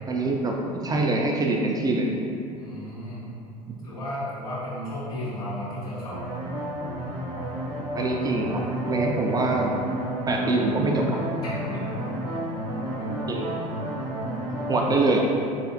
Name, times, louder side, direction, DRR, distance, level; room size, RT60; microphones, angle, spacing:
voice 1, 0.1-2.1 8.0-9.7 10.3-11.2 13.3-13.5 14.7-15.3, right 2 dB, 20° right, 0 dB, 0.3 m, -24 dB
voice 2, 2.5-3.2 3.8-6.2 11.6-12.0 13.0-13.1, equal, 70° left, -9 dB, 1.5 m, -34 dB
sound 1, 6.1-15.0, equal, 85° right, 0.6 m, -31 dB
4.0 x 3.2 x 2.7 m, 2.5 s
figure-of-eight pair, 65°, 19 cm